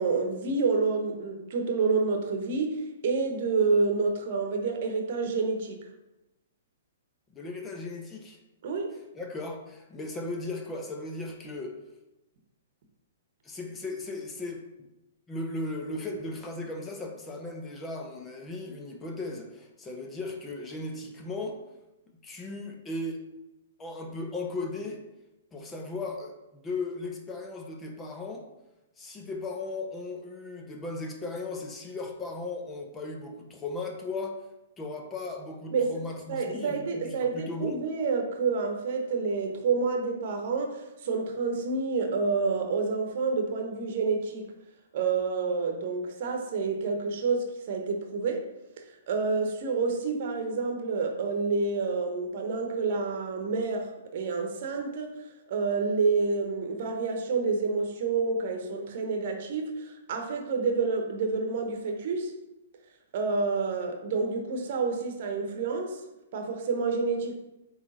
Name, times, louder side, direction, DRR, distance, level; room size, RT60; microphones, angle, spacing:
voice 1, 0.0-5.8 8.6-8.9 35.7-35.9 36.3-44.4 44.9-48.4 48.8-55.1 55.5-62.3 63.1-66.0 66.3-67.3, right 4 dB, 50° right, 3 dB, 1.1 m, -28 dB
voice 2, 7.3-8.4 9.2-11.7 13.4-14.9 15.3-21.6 22.2-23.2 23.8-25.0 25.5-28.5 29.0-34.4 34.8-37.8, left 2 dB, 15° left, 2 dB, 0.9 m, -37 dB
8.5 x 3.3 x 3.9 m, 0.96 s
figure-of-eight pair, 115°, 0 cm